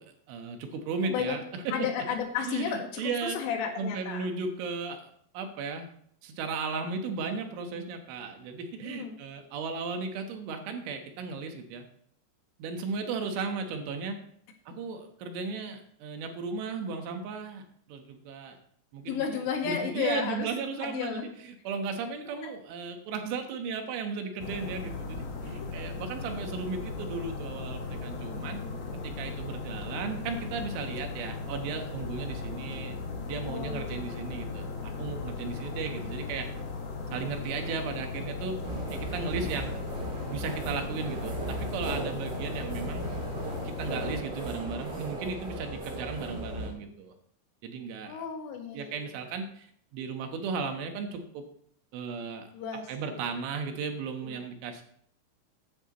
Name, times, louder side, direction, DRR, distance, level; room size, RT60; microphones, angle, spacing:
voice 1, 0.0-1.8 2.4-3.4 3.8-5.9 6.2-11.9 12.6-14.2 14.7-18.6 18.9-19.2 19.6-28.6 29.0-33.0 33.3-36.5 37.1-38.6 38.9-39.8 40.3-41.4 41.7-43.1 43.7-47.1 47.6-48.2 48.7-49.7 49.9-51.4 51.9-52.5 52.9-54.8, right 4 dB, 80° right, 5 dB, 3.7 m, -35 dB
voice 2, 1.0-1.4 1.7-4.3 8.8-9.2 19.0-20.5 20.8-21.3 22.4-22.5 25.4-25.9 28.4-28.8 33.5-34.0 44.8-45.1 48.1-49.1 52.5-52.9 54.2-54.4, left 7 dB, 90° left, 3 dB, 4.2 m, -33 dB
sound 1, 24.4-44.2, left 3 dB, 75° left, 1.4 m, -37 dB
sound 2, 38.6-46.7, right 1 dB, 40° right, 1.8 m, -37 dB
15.0 x 10.0 x 3.0 m, 0.65 s
omnidirectional pair, 5.5 m